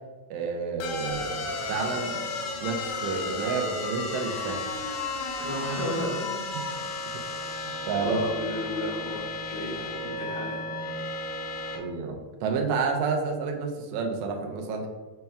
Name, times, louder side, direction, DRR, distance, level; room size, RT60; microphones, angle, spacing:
voice 1, 0.3-2.2 2.6-4.6 6.5-6.7 7.4-8.2 11.8-14.9, right 5 dB, 80° right, 2 dB, 1.8 m, -30 dB
sound 1, 0.8-11.8, left 3 dB, 85° left, 2.3 m, -33 dB
voice 2, 5.4-6.8 8.0-10.7 11.4-11.6, equal, 45° left, -11 dB, 1.3 m, -33 dB
5.4 x 4.4 x 2.3 m, 1.3 s
omnidirectional pair, 3.8 m